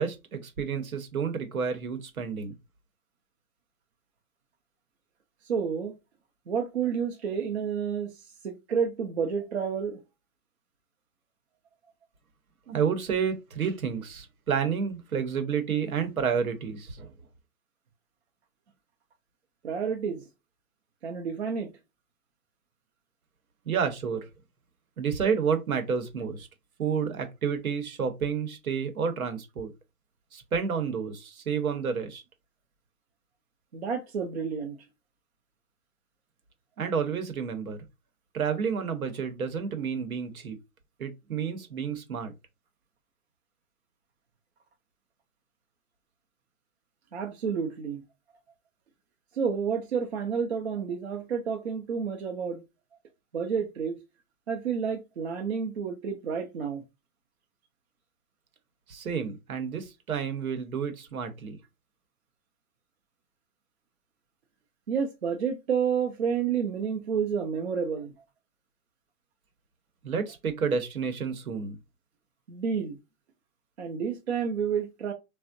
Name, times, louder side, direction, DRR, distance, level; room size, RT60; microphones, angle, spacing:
voice 1, 0.0-2.6 12.7-17.1 23.6-24.3 25.0-26.5 26.8-29.7 30.3-32.2 36.8-37.8 38.3-40.6 41.0-42.3 58.9-61.6 70.0-71.8, right 6 dB, 70° right, 0.9 m, -30 dB
voice 2, 5.5-5.9 6.5-8.1 8.4-10.0 19.6-20.2 21.0-21.7 33.7-34.8 47.1-48.0 49.4-52.6 53.3-54.0 54.5-56.8 64.9-68.1 72.5-73.0 73.8-75.1, right 6 dB, 50° right, 0.5 m, -30 dB
3.5 x 2.0 x 2.5 m
hypercardioid pair, 160°, 44 cm